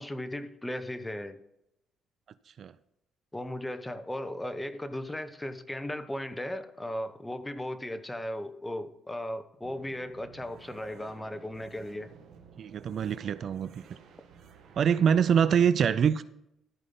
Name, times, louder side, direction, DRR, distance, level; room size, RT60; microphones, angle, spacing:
voice 1, 0.0-1.4 3.3-12.1, left 1 dB, 10° left, 10 dB, 0.9 m, -36 dB
sound 1, 9.6-15.4, right 6 dB, 75° right, 1.6 m, -53 dB
voice 2, 12.6-14.0 14.8-16.2, right 7 dB, 55° right, 15 dB, 0.4 m, -25 dB
13.5 x 5.4 x 5.3 m, 0.82 s
cardioid pair, 105°, 0 cm